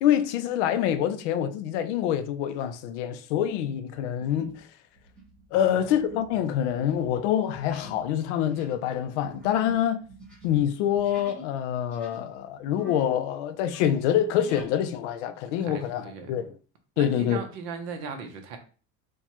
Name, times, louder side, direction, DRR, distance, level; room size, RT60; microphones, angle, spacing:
voice 1, 0.0-4.7 5.5-10.1 10.4-16.5 17.0-17.4, left 10 dB, 90° left, 0.5 m, -26 dB
sound 1, 2.5-2.8 3.3-3.6 4.2-4.7 4.9-11.5 11.8-13.2 13.5-14.7, right 1 dB, 5° left, 0.8 m, -47 dB
voice 2, 15.6-16.4 17.0-18.6, right 5 dB, 50° right, 0.8 m, -38 dB
4.4 x 2.3 x 2.9 m
cardioid pair, 175°, 34 cm